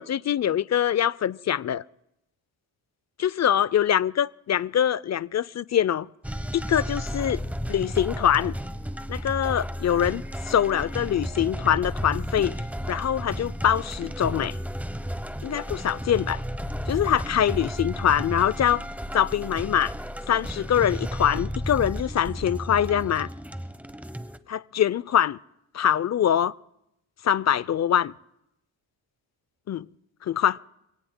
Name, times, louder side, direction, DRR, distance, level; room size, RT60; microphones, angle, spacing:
voice 1, 0.0-1.8 3.2-6.1 6.5-7.4 7.7-8.6 9.1-12.6 12.9-14.6 15.4-16.4 16.9-18.9 19.1-19.9 20.3-23.3 24.5-25.4 25.8-26.6 27.2-28.1 29.7-29.9 30.2-30.6, left 10 dB, 35° left, 0.5 m, -24 dB
sound 1, 6.2-24.4, equal, 5° right, 0.9 m, -33 dB
26.0 x 18.0 x 2.2 m
supercardioid pair, 50°, 49 cm